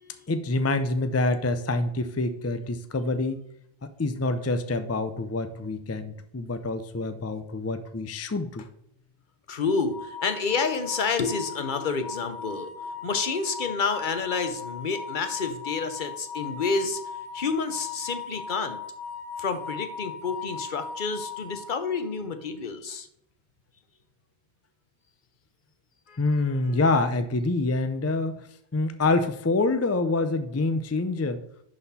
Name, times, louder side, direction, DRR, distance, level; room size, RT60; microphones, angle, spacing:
voice 1, 0.3-3.4 3.8-8.7 26.2-28.4 28.7-31.4, left 2 dB, 25° left, 9 dB, 0.3 m, -26 dB
voice 2, 9.5-17.0 17.3-18.8 19.4-23.1 26.1-26.2, left 4 dB, 50° left, 9 dB, 0.9 m, -29 dB
sound 1, 9.9-22.1, left 5 dB, 85° left, 1.6 m, -38 dB
11.0 x 4.3 x 4.1 m, 0.75 s
omnidirectional pair, 1.1 m